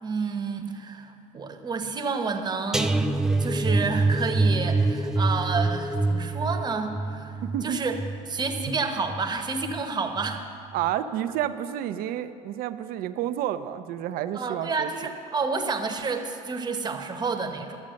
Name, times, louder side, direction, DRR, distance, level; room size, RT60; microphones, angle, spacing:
voice 1, 0.0-3.1 3.4-8.0 8.3-10.4 14.3-17.8, right 4 dB, 25° right, 5 dB, 1.0 m, -30 dB
sound 1, 2.7-9.8 10.2-10.5 10.8-10.9, right 2 dB, 5° right, 0.4 m, -26 dB
voice 2, 7.4-7.8 10.7-14.9, right 11 dB, 55° right, 11 dB, 0.6 m, -30 dB
12.0 x 7.3 x 6.4 m, 2.4 s
supercardioid pair, 105°, 18 cm